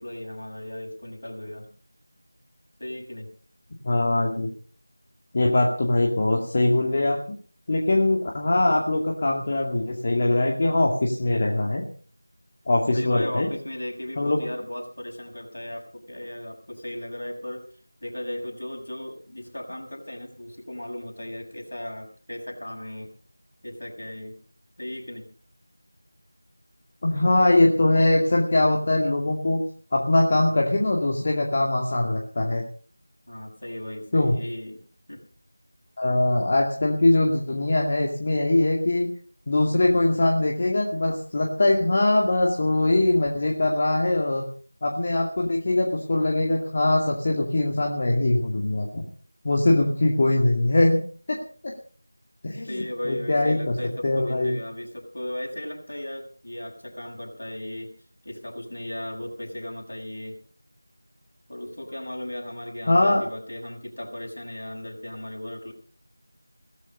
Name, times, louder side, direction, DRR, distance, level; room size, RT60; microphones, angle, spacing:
voice 1, 0.0-1.7 2.8-3.3 12.9-17.7 18.0-23.1 23.6-24.4 24.8-25.3 33.3-34.8 35.1-35.2 52.7-57.9 58.2-60.4 61.5-65.7, left 1 dB, 65° left, 1 dB, 6.8 m, -36 dB
voice 2, 3.8-4.5 5.3-7.4 7.7-11.8 12.7-13.5 14.2-14.4 27.0-29.6 29.9-32.6 34.1-34.4 36.0-39.1 39.5-44.4 44.8-49.0 49.4-51.0 51.3-51.4 51.6-51.7 52.4-53.7 54.0-54.5 62.9-63.2, left 2 dB, 30° left, 0 dB, 2.2 m, -22 dB
17.0 x 14.5 x 5.4 m, 0.43 s
figure-of-eight pair, 170°, 0 cm